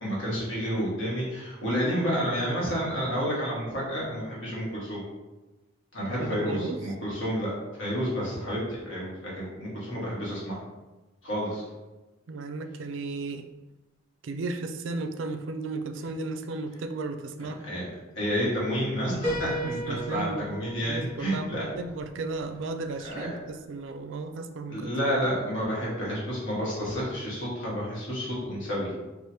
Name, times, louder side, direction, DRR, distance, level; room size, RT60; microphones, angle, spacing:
voice 1, 0.0-5.0 5.9-10.6 11.2-11.6 17.4-17.9 18.1-21.7 23.0-23.3 24.7-28.9, equal, 75° left, -6 dB, 1.5 m, -30 dB
voice 2, 6.2-6.8 12.3-13.5 14.2-17.6 19.6-20.5 20.8-21.5 21.8-24.9, right 3 dB, 70° right, 7 dB, 0.4 m, -34 dB
Piano, 19.2-23.0, right 1 dB, 40° left, 1.2 m, -36 dB
4.8 x 2.5 x 2.7 m, 1.1 s
head